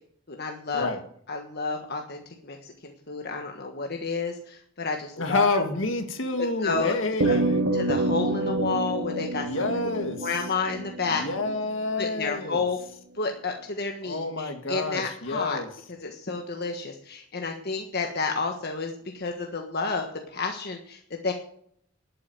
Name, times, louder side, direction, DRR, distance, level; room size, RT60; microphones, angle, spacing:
voice 1, 0.3-0.9 1.3-5.5 6.6-6.9 7.2-7.4 7.7-9.5 10.2-11.5 12.0-12.8 13.1-15.6 16.0-21.3, left 4 dB, 55° left, 3 dB, 1.4 m, -30 dB
voice 2, 5.2-7.6 9.4-10.3 11.1-12.6 14.0-15.7, left 2 dB, 70° left, 6 dB, 2.1 m, -28 dB
sound 1, 7.2-11.8, right 2 dB, 65° right, 1.7 m, -28 dB
12.0 x 8.6 x 8.9 m, 0.65 s
head